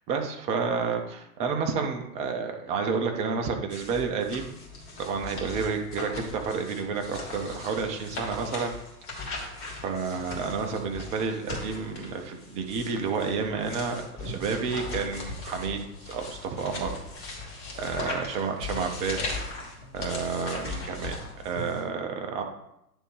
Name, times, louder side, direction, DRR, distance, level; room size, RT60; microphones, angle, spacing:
voice 1, 0.1-4.6 5.0-8.7 9.2-9.3 9.8-17.0 17.8-19.4 19.9-22.4, right 5 dB, 15° right, 4 dB, 0.4 m, -30 dB
sound 1, 3.7-21.8, left 3 dB, 25° left, 2.4 m, -38 dB
9.7 x 3.5 x 4.7 m, 0.81 s
figure-of-eight pair, 110°, 47 cm